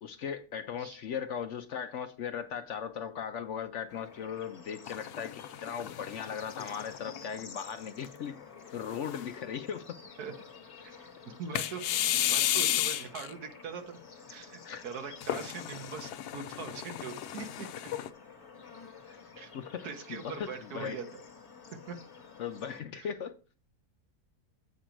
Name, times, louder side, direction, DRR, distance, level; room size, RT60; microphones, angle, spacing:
voice 1, 0.0-8.4 8.7-10.0 12.6-12.8 14.6-14.8 17.9-18.0 19.1-19.2 19.5-21.0 22.4-23.4, left 8 dB, 65° left, 0.8 m, -38 dB
Bird / Insect / Frog, 3.9-22.8, left 5 dB, 50° left, 1.5 m, -51 dB
sound 1, 4.9-7.4 8.0-8.1 8.8-9.5 11.6-13.3 15.2-18.1, left 11 dB, 85° left, 1.1 m, -33 dB
voice 2, 11.4-11.9 12.3-14.0 14.3-17.7 19.4-19.5 19.8-21.2 21.7-22.0 23.0-23.1, right 6 dB, 80° right, 1.6 m, -42 dB
8.0 x 5.1 x 4.5 m
omnidirectional pair, 1.6 m